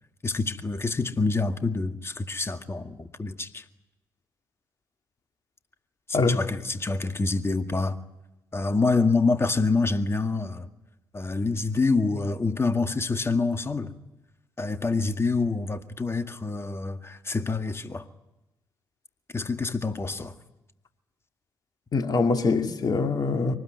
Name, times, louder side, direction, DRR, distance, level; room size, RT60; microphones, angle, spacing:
voice 1, 0.2-3.6 6.1-8.0 8.5-10.7 11.1-13.9 14.6-18.1 19.3-20.3, left 3 dB, 30° left, 2.0 m, -26 dB
voice 2, 21.9-23.6, left 4 dB, 50° left, 2.5 m, -23 dB
24.5 x 19.5 x 9.6 m
hypercardioid pair, 45°, 9 cm